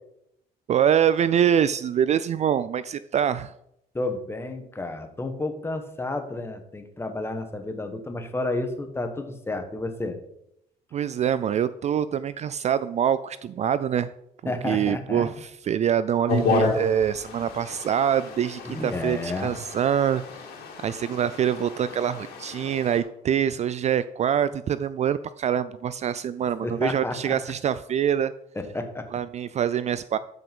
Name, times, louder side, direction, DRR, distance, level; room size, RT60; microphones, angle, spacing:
voice 1, 0.7-3.5 10.9-14.1 14.4-15.3 15.7-20.2 20.8-28.3 29.1-30.2, right 9 dB, 40° right, 15 dB, 0.4 m, -25 dB
voice 2, 3.9-10.2 14.4-15.4 18.6-19.6 26.6-27.4 28.5-29.1, left 2 dB, 15° left, 6 dB, 1.6 m, -31 dB
sound 1, 16.3-23.0, left 3 dB, 75° left, 3.1 m, -31 dB
13.0 x 5.8 x 5.4 m, 0.79 s
cardioid pair, 110°, 17 cm